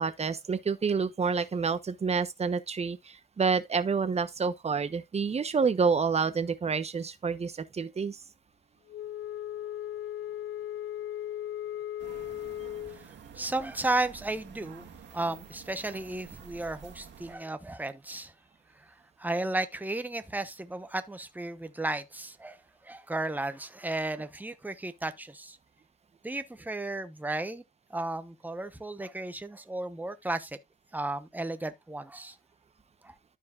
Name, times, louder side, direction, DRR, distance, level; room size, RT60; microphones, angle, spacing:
voice 1, 0.0-8.2 13.2-13.3, right 5 dB, 30° right, 1.0 m, -28 dB
Wind instrument woodwind instrument, 8.9-13.0, left 11 dB, 65° left, 0.5 m, -37 dB
sound 1, 12.0-17.4, right 7 dB, 65° right, 2.1 m, -50 dB
voice 2, 12.8-18.3 19.2-22.6 22.8-25.6 26.2-27.6 27.9-30.6 30.9-32.4 33.0-33.1, right 2 dB, 10° right, 1.0 m, -34 dB
13.0 x 4.8 x 2.5 m
cardioid pair, 90°, 20 cm